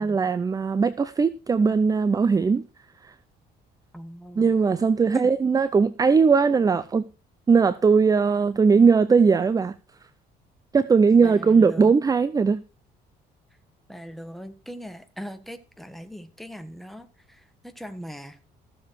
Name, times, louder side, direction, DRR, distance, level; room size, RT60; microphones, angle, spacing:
voice 1, 0.0-2.6 4.4-7.0 7.5-9.7 10.7-12.6, right 5 dB, 20° right, 0.5 m, -19 dB
voice 2, 3.9-4.5 5.1-5.3 11.2-11.9 13.9-18.5, equal, ahead, 1.5 m, -39 dB
14.5 x 7.4 x 4.7 m
cardioid pair, 110°, 17 cm